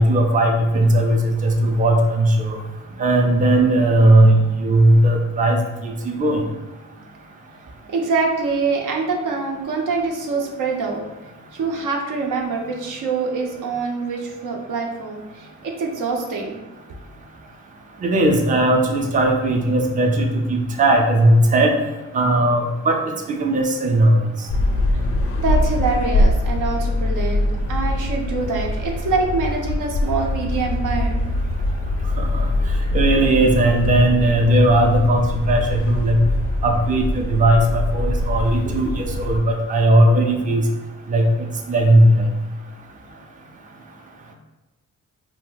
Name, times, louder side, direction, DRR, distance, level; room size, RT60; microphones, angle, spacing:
voice 1, 0.0-2.6 3.0-6.4 18.0-21.7 22.1-23.0 23.4-24.2 32.2-32.5 32.9-36.2 36.6-40.7 41.1-41.3 41.7-42.2, right 1 dB, 25° right, 2 dB, 0.4 m, -17 dB
voice 2, 7.9-11.1 11.5-16.6 25.4-31.2, right 4 dB, 75° right, 1 dB, 0.6 m, -25 dB
sound 1, 24.5-39.4, left 1 dB, 50° left, 0.4 m, -23 dB
2.3 x 2.1 x 3.8 m, 1.1 s
cardioid pair, 60°, 32 cm